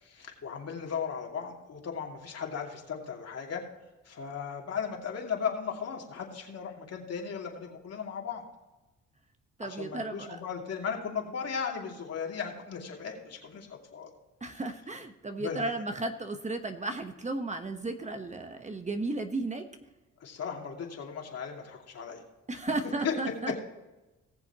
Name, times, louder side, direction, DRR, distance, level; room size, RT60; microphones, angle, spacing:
voice 1, 0.0-3.6 4.0-8.4 9.6-14.1 15.4-15.7 20.2-22.2 23.0-23.1, left 6 dB, 55° left, 0 dB, 2.6 m, -36 dB
voice 2, 9.6-10.4 14.4-19.6 22.5-23.5, right 2 dB, 25° right, 6 dB, 1.1 m, -34 dB
19.5 x 7.1 x 3.0 m, 1.0 s
cardioid pair, 90°, 30 cm